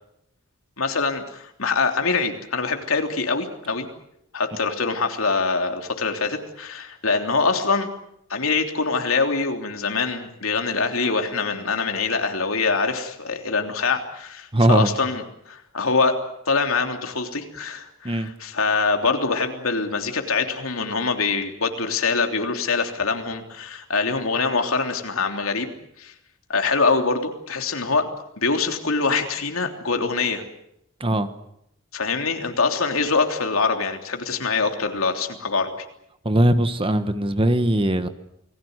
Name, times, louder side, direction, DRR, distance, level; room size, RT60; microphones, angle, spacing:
voice 1, 0.8-3.9 4.3-7.9 8.3-16.2 16.5-25.7 26.0-26.1 26.5-28.1 28.4-30.4 31.9-35.7, left 4 dB, 85° left, 5 dB, 3.3 m, -24 dB
voice 2, 14.5-14.9 18.0-18.3 31.0-31.3 36.2-38.1, right 1 dB, 25° right, 11 dB, 1.4 m, -20 dB
29.0 x 20.0 x 8.1 m, 0.79 s
head